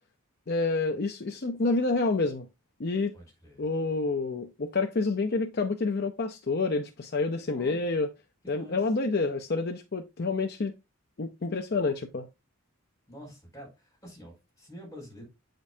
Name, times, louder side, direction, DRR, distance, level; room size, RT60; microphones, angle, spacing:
voice 1, 0.5-2.5 2.8-3.1 3.6-8.1 8.5-10.7 11.2-12.3, left 3 dB, 45° left, 0.5 m, -28 dB
voice 2, 3.1-3.6 7.4-7.8 8.4-8.8 13.1-15.2, equal, 15° left, 4.6 m, -47 dB
8.3 x 5.1 x 2.7 m
head